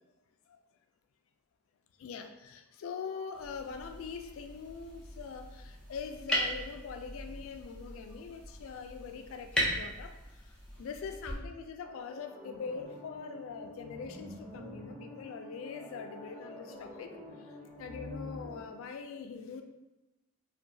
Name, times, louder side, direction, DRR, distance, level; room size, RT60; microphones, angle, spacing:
voice 1, 2.0-10.1 10.4-17.1 17.4-17.5 17.8-19.6, left 5 dB, 80° left, 7 dB, 0.3 m, -43 dB
sound 1, 3.3-11.3, equal, 5° left, 0.4 m, -38 dB
sound 2, 11.8-18.6, left 1 dB, 70° right, 0.7 m, -47 dB
2.7 x 2.2 x 2.6 m, 1.0 s
head